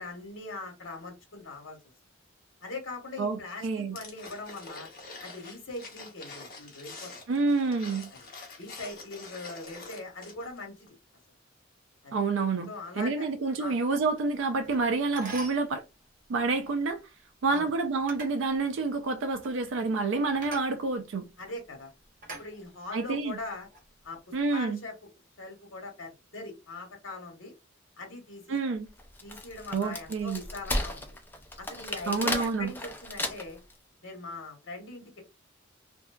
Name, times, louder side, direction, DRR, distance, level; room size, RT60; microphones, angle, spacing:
voice 1, 0.0-1.8 2.6-4.9 5.2-7.1 8.1-8.3 8.6-11.0 12.0-12.2 12.7-13.3 13.6-13.8 17.5-17.7 21.4-21.9 22.4-23.7 24.0-24.2 24.5-25.0 25.4-27.5 28.0-28.7 29.2-31.1 31.6-33.6 34.0-35.2, left 2 dB, 70° left, 0.9 m, -41 dB
voice 2, 3.2-4.0 7.3-8.1 12.1-15.8 16.3-17.0 17.4-21.2 22.9-23.4 24.3-24.8 28.5-28.9 29.7-30.4 32.1-32.7, right 3 dB, 70° right, 0.4 m, -28 dB
sound 1, 4.0-10.6 10.9-11.0, left 3 dB, 45° left, 0.8 m, -46 dB
sound 2, 14.6-14.8 15.2-15.7 17.4-17.7 18.1-18.4 19.3-19.5 20.4-20.7 21.4-21.6 22.2-23.0 23.5-23.8, right 2 dB, 45° right, 0.8 m, -43 dB
Wood, 29.0-33.7, left 1 dB, 10° left, 0.3 m, -34 dB
2.7 x 2.1 x 2.2 m
head